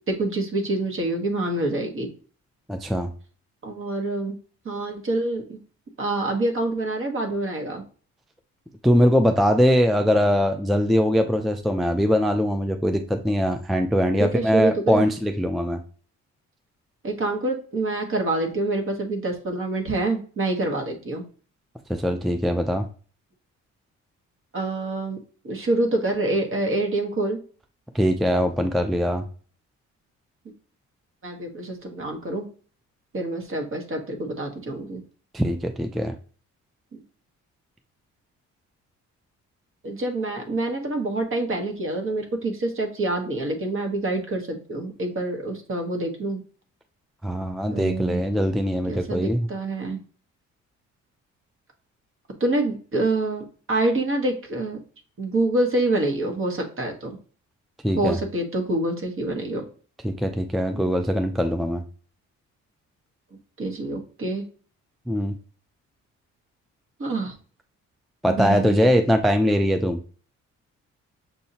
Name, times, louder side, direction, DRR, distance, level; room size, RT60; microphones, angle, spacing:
voice 1, 0.1-2.1 3.6-4.4 4.6-5.6 6.0-7.8 14.2-15.1 17.0-21.2 24.5-25.2 25.4-27.4 31.2-32.5 33.1-35.0 36.9-37.0 39.8-46.4 47.7-48.2 48.9-50.0 52.4-54.8 55.2-57.2 58.0-59.7 60.7-60.9 63.6-64.4 67.0-67.4 68.3-68.7, right 2 dB, 45° right, 3 dB, 1.4 m, -26 dB
voice 2, 2.7-3.1 8.8-15.8 21.9-22.9 27.9-29.3 35.3-36.1 47.2-49.5 57.8-58.2 60.0-61.8 65.1-65.4 68.2-70.0, equal, ahead, 6 dB, 0.3 m, -22 dB
6.4 x 2.6 x 2.8 m, 0.41 s
cardioid pair, 90°, 30 cm